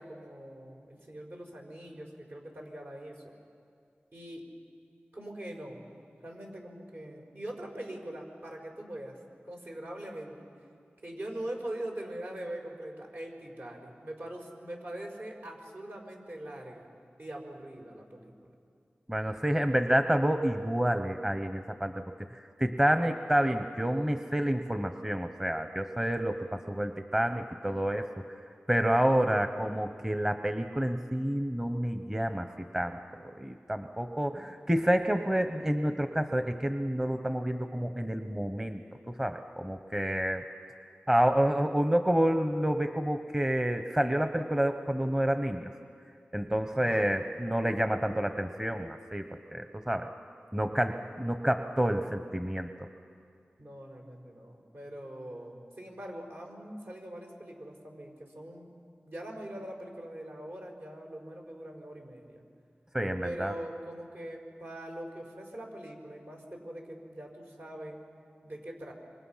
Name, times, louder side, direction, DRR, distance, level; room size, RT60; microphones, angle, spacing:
voice 1, 0.0-3.3 4.1-4.4 5.1-5.8 6.2-9.2 9.4-10.5 11.0-16.9 17.2-18.5 46.7-47.1 53.6-58.7 59.1-62.4 63.2-68.0 68.4-68.9, right 1 dB, 65° right, 0 dB, 4.6 m, -42 dB
voice 2, 19.1-22.0 22.6-28.2 28.7-38.8 39.1-40.4 41.1-45.7 46.3-49.3 49.5-50.1 50.5-52.7 62.9-63.5, right 1 dB, 15° right, 7 dB, 0.9 m, -29 dB
26.0 x 24.5 x 5.7 m, 2.3 s
wide cardioid pair, 55°, 4 cm